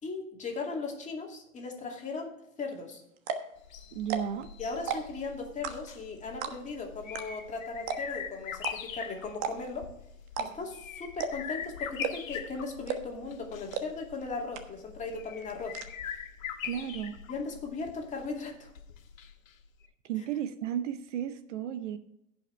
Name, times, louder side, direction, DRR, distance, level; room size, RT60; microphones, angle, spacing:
voice 1, 0.0-3.0 4.6-9.9 10.4-15.8 17.3-18.7, left 4 dB, 15° left, 0 dB, 2.4 m, -38 dB
sound 1, 2.7-2.8 3.2-3.5 4.0-4.4 4.8-5.2 5.6-6.0 6.4-6.8 7.1-7.2 7.5-7.6 7.9-8.2 8.6-8.7 9.3-9.8 10.3-10.8 11.2-11.5 12.0-12.4 12.9-13.2 13.7-13.8 14.2-14.3 14.5-15.0 15.2-15.9, right 7 dB, 40° right, 1.3 m, -33 dB
sound 2, 3.6-19.5 19.8-19.9, left 8 dB, 70° left, 1.6 m, -42 dB
voice 2, 3.9-4.5 16.6-17.2 20.0-22.0, right 10 dB, 60° right, 11 dB, 0.9 m, -34 dB
15.5 x 5.8 x 3.3 m, 0.81 s
hypercardioid pair, 120°, 41 cm